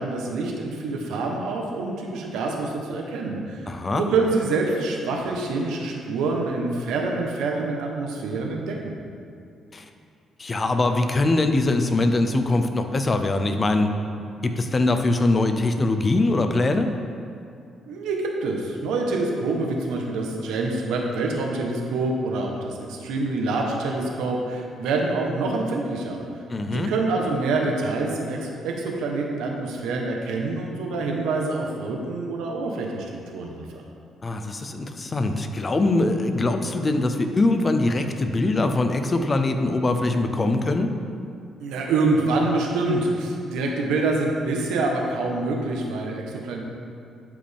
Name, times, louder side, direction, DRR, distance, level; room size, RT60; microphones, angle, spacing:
voice 1, 0.0-3.6 3.9-8.9 17.9-26.2 26.6-33.8 41.6-46.6, right 3 dB, 90° right, 0 dB, 1.1 m, -26 dB
voice 2, 3.7-4.0 9.7-9.9 10.4-13.9 14.4-16.9 26.5-26.9 34.2-40.9, left 2 dB, 30° left, 7 dB, 0.7 m, -22 dB
12.0 x 5.1 x 3.6 m, 2.5 s
cardioid pair, 90°, 0 cm